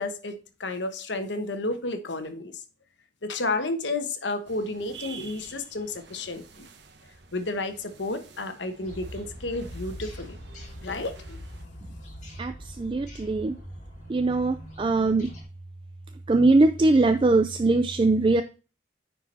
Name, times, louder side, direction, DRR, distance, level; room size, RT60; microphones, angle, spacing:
voice 1, 0.0-2.6 3.2-6.7 7.3-10.4 10.8-11.4, left 2 dB, 80° left, 9 dB, 1.1 m, -31 dB
sound 1, 4.5-11.7, right 6 dB, 75° right, 0.9 m, -49 dB
sound 2, 8.8-15.4, equal, 40° left, 2.4 m, -42 dB
voice 2, 12.4-13.6 14.1-15.3 16.3-18.4, right 2 dB, 25° right, 9 dB, 0.3 m, -21 dB
9.7 x 4.7 x 4.2 m, 0.35 s
head